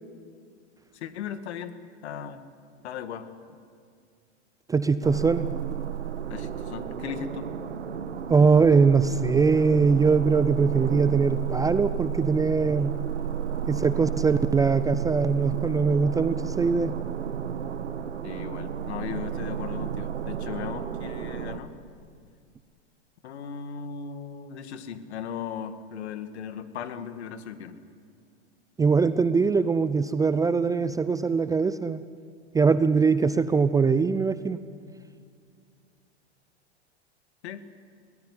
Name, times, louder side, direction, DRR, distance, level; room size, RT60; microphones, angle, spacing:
voice 1, 0.9-2.4 2.8-3.3 6.3-7.5 18.2-21.8 23.2-27.8 37.4-37.8, left 7 dB, 70° left, 9 dB, 2.0 m, -37 dB
voice 2, 4.7-5.5 8.3-12.9 13.7-17.0 28.8-32.0 32.5-34.6, right 5 dB, 10° right, 13 dB, 0.5 m, -22 dB
sound 1, 5.0-21.6, right 9 dB, 90° right, 1.4 m, -32 dB
22.5 x 18.0 x 9.6 m, 2.2 s
hypercardioid pair, 110°, 34 cm